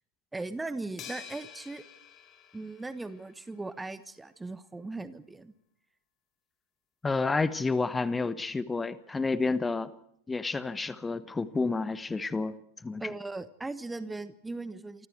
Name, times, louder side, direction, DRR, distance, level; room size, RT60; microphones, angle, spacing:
voice 1, 0.3-1.8 2.5-5.5 13.0-15.1, right 3 dB, 10° right, 14 dB, 1.3 m, -38 dB
sound 1, 1.0-3.5, left 8 dB, 30° left, 4.2 m, -48 dB
voice 2, 7.0-9.9 10.3-12.5 12.8-13.0, left 3 dB, 10° left, 15 dB, 1.3 m, -30 dB
28.5 x 25.0 x 4.7 m, 0.69 s
figure-of-eight pair, 90°, 0 cm